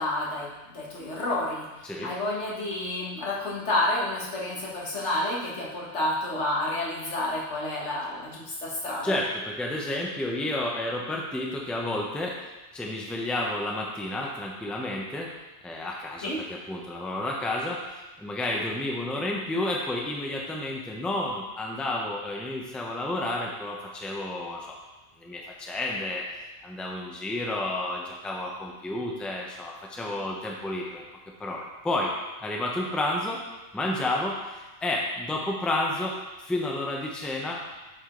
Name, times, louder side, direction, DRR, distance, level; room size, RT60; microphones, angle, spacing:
voice 1, 0.0-1.7 2.0-9.2 16.2-16.4, left 1 dB, 70° left, -4 dB, 1.8 m, -30 dB
voice 2, 9.0-15.3 15.6-24.8 25.2-26.2 26.6-31.0 31.4-32.1 32.4-33.4 33.7-37.8, left 1 dB, ahead, -2 dB, 0.8 m, -31 dB
8.4 x 5.0 x 3.9 m, 1.1 s
omnidirectional pair, 1.2 m